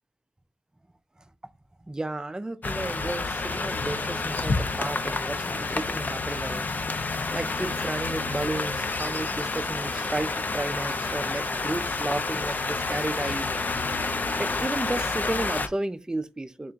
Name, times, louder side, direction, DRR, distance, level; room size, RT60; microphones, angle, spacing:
voice 1, 1.8-6.7 7.3-13.5 14.4-16.7, right 2 dB, 15° right, 0.4 m, -33 dB
sound 1, 2.6-15.7, left 3 dB, 40° left, 0.5 m, -29 dB
3.7 x 3.5 x 2.5 m
cardioid pair, 70°, 4 cm